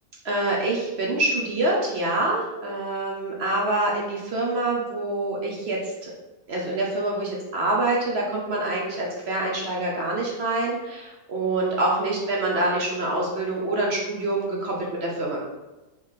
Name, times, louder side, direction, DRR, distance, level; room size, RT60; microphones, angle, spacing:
voice 1, 0.2-6.1 6.5-15.4, right 2 dB, 65° right, -3 dB, 0.6 m, -26 dB
4.5 x 3.2 x 3.6 m, 1.1 s
omnidirectional pair, 2.0 m